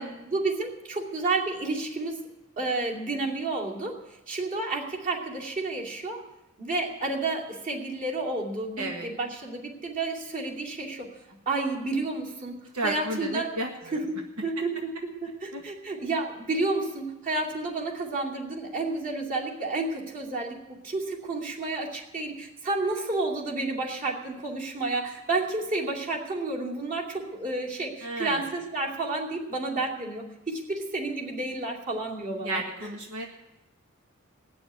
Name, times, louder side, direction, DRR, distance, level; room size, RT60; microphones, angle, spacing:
voice 1, 0.0-2.2 2.6-4.0 4.3-6.2 6.6-11.1 11.5-12.6 12.8-14.9 15.2-32.9, right 2 dB, 40° right, -2 dB, 2.6 m, -31 dB
voice 2, 8.8-9.1 12.7-14.0 15.5-15.6 28.0-28.4 32.4-33.3, right 1 dB, 75° right, 2 dB, 1.5 m, -32 dB
18.0 x 7.0 x 9.7 m, 0.97 s
head